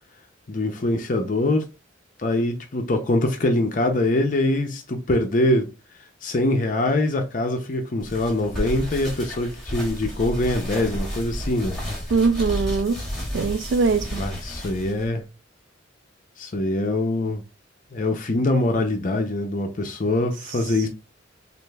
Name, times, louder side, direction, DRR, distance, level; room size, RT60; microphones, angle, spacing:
voice 1, 0.5-1.7 2.2-5.7 6.2-11.8 14.2-15.2 16.4-17.4 17.9-20.9, left 1 dB, 40° left, 0.5 m, -23 dB
sound 1, 8.0-15.1, equal, 5° left, 1.7 m, -32 dB
voice 2, 12.1-13.0 13.3-14.3 20.4-20.9, right 4 dB, 60° right, 0.3 m, -23 dB
6.3 x 2.5 x 2.3 m
head